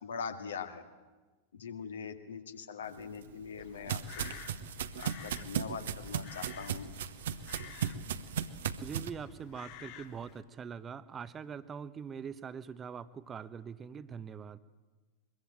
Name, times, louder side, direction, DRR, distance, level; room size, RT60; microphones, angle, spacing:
voice 1, 0.0-0.8 1.5-4.3 5.0-6.9, left 6 dB, 65° left, 7 dB, 2.0 m, -42 dB
sound 1, 3.0-9.1, right 8 dB, 60° right, 1.1 m, -37 dB
Crow, 3.6-10.4, left 10 dB, 45° left, 1.9 m, -52 dB
voice 2, 8.8-14.6, right 7 dB, 20° right, 15 dB, 1.0 m, -43 dB
23.0 x 22.0 x 8.9 m, 1.3 s
figure-of-eight pair, 90°, 0 cm